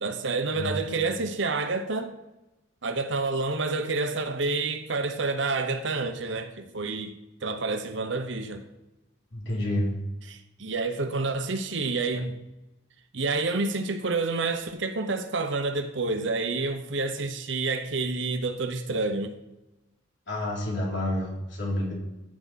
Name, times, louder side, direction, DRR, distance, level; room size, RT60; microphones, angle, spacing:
voice 1, 0.0-2.1 2.8-7.2 7.4-8.6 10.3-12.4 13.1-19.4, right 3 dB, 70° right, 1.0 m, -28 dB
voice 2, 0.6-0.9 9.3-9.9 20.3-21.9, left 1 dB, 65° left, 3.3 m, -29 dB
14.5 x 6.0 x 4.2 m
head